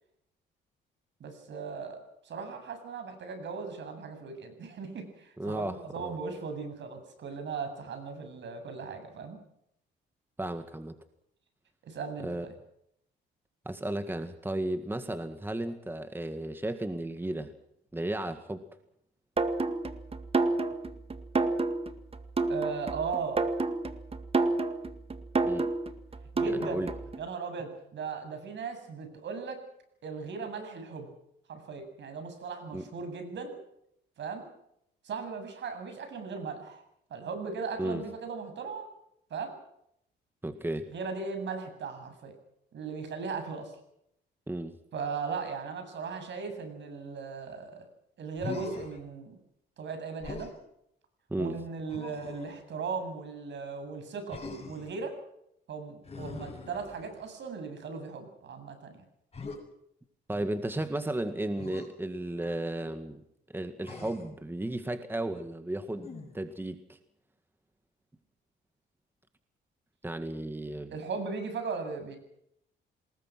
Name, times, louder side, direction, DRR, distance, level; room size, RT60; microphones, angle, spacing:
voice 1, 1.2-9.4 11.8-12.5 22.5-23.5 26.3-26.9 27.2-29.6 30.0-31.1 31.5-33.5 34.2-34.5 35.0-36.8 37.1-38.9 39.3-39.6 40.9-42.3 42.7-43.7 44.9-47.9 48.2-49.4 49.8-50.5 51.4-54.4 54.7-55.1 55.7-59.0 70.9-72.2, right 5 dB, 65° right, 7 dB, 7.6 m, -37 dB
voice 2, 5.4-6.2 10.4-11.0 12.2-12.5 13.7-17.5 17.9-18.7 25.4-25.7 26.5-26.9 32.7-32.8 37.8-38.0 40.4-40.9 44.5-44.8 51.3-51.6 60.3-63.2 63.5-66.1 66.3-67.0 70.0-71.0, right 1 dB, 10° right, 9 dB, 1.9 m, -34 dB
sound 1, 19.4-27.2, right 3 dB, 30° right, 1.9 m, -30 dB
Human voice, 48.4-49.0 50.2-50.6 51.9-52.6 54.3-54.9 56.0-57.3 59.3-59.6 61.6-61.9 63.8-64.4 65.9-66.5, left 3 dB, 30° left, 7.3 m, -42 dB
27.5 x 20.5 x 6.2 m, 0.75 s
cardioid pair, 90°, 20 cm